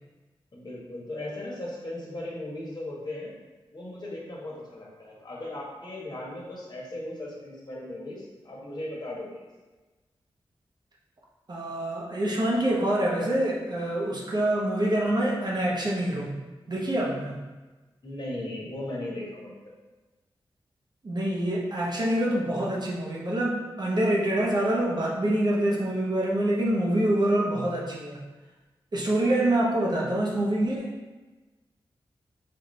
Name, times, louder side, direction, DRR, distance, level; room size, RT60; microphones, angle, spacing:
voice 1, 0.5-3.3 3.7-9.4 18.0-19.5 29.3-29.5, left 1 dB, 50° left, -4 dB, 1.2 m, -37 dB
voice 2, 11.5-16.3 16.7-17.4 21.0-28.2 28.9-30.9, right 1 dB, 50° right, -3 dB, 0.9 m, -26 dB
4.3 x 2.6 x 3.1 m, 1.2 s
cardioid pair, 40°, 10 cm